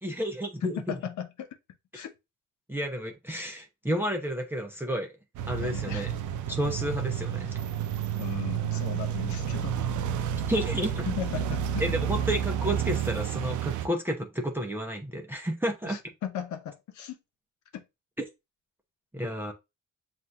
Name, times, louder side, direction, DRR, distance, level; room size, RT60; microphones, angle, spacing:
voice 1, 0.0-0.8 1.9-2.0 2.7-5.1 5.5-6.1 6.5-7.6 10.5-11.1 11.8-16.0 19.1-19.5, equal, 5° right, 0.7 m, -31 dB
voice 2, 0.6-1.6 1.9-2.1 5.6-6.1 8.2-9.8 11.0-11.8 15.9-17.2 17.7-17.8, left 9 dB, 70° left, 0.8 m, -37 dB
sound 1, 5.4-13.9, right 9 dB, 80° right, 0.5 m, -30 dB
7.3 x 2.6 x 2.2 m
cardioid pair, 90°, 30 cm